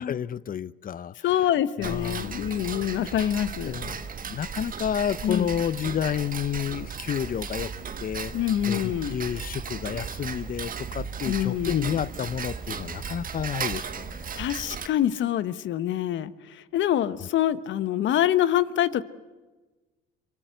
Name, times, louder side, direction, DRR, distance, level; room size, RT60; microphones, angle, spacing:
voice 1, 0.0-1.1 1.8-2.8 3.7-7.7 8.0-8.3 8.6-14.4, left 9 dB, 40° left, 19 dB, 0.8 m, -30 dB
voice 2, 1.2-3.8 5.2-5.5 8.3-9.2 11.3-12.0 14.4-19.0, left 11 dB, 65° left, 14 dB, 1.1 m, -25 dB
Tick-tock, 1.8-14.9, right 6 dB, 40° right, 1.7 m, -36 dB
24.0 x 22.5 x 8.2 m, 1.2 s
supercardioid pair, 75°, 21 cm